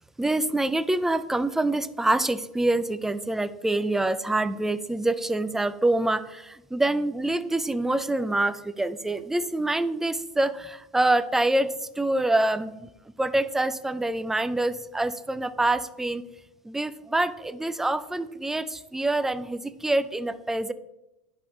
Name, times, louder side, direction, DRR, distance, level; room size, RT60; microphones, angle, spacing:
voice 1, 0.2-12.9 13.2-16.2 16.6-20.7, right 2 dB, 5° right, 13 dB, 0.4 m, -26 dB
10.5 x 3.7 x 3.7 m, 0.93 s
hypercardioid pair, 85°, 6 cm